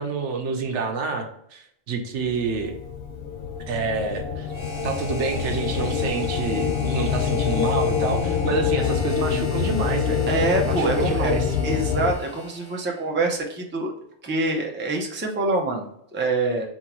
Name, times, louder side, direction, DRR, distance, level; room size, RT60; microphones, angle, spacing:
voice 1, 0.0-2.7 3.7-4.5 4.8-10.3 10.6-11.5, right 4 dB, 70° right, 4 dB, 1.0 m, -28 dB
sound 1, 2.3-12.1, left 7 dB, 60° left, 0.7 m, -26 dB
Harmonica, 4.5-13.1, equal, 25° left, 1.1 m, -39 dB
voice 2, 10.3-11.3 11.6-13.9 14.2-16.7, right 2 dB, 15° right, 0 dB, 0.5 m, -25 dB
4.1 x 3.8 x 2.9 m, 0.74 s
omnidirectional pair, 1.2 m